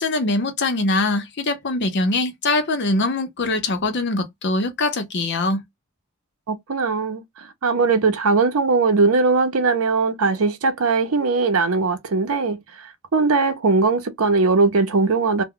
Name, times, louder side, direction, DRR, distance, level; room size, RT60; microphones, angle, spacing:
voice 1, 0.0-5.6, left 2 dB, 55° left, 0.7 m, -22 dB
voice 2, 6.5-15.4, right 4 dB, 75° right, 0.6 m, -20 dB
2.2 x 2.1 x 3.5 m
head